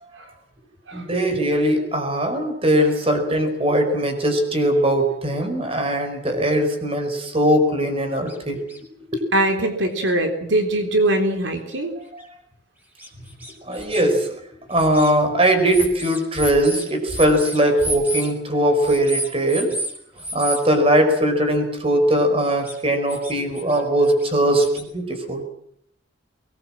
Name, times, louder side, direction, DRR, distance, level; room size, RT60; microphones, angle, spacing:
voice 1, 0.9-8.6 9.1-9.3 12.1-12.2 13.6-14.4 14.7-19.8 20.3-25.4, right 1 dB, 30° right, 6 dB, 4.9 m, -20 dB
sound 1, 8.3-8.4 8.7-8.8 9.6-9.7 10.1-10.2 10.7-10.8 11.7-11.8 12.2-12.3 13.0-14.1 14.7-15.1 15.7-18.3 18.8-19.9 20.2-20.6 22.5-22.8 23.1-23.8 24.0-24.8, equal, 10° right, 6.1 m, -31 dB
voice 2, 9.3-11.9, right 1 dB, 80° right, 4 dB, 3.7 m, -21 dB
23.5 x 21.0 x 7.7 m, 0.68 s
head